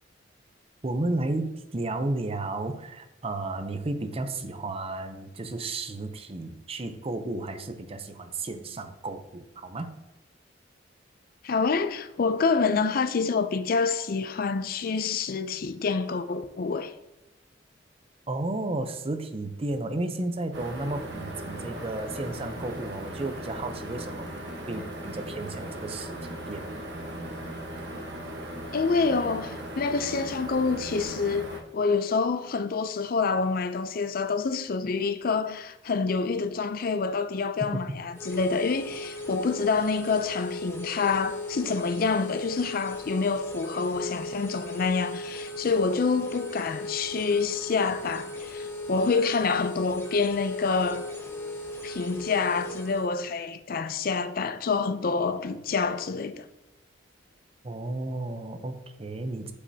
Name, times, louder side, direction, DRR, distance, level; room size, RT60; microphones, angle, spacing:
voice 1, 0.8-9.9 18.3-26.7 57.6-59.5, right 2 dB, 30° right, 0.6 m, -33 dB
voice 2, 11.4-16.9 28.7-51.1 51.8-56.4, left 4 dB, 50° left, 0.5 m, -27 dB
sound 1, 20.5-31.6, right 1 dB, 65° right, 1.1 m, -38 dB
sound 2, 38.1-53.1, left 1 dB, 15° left, 0.8 m, -37 dB
8.2 x 5.3 x 2.8 m
head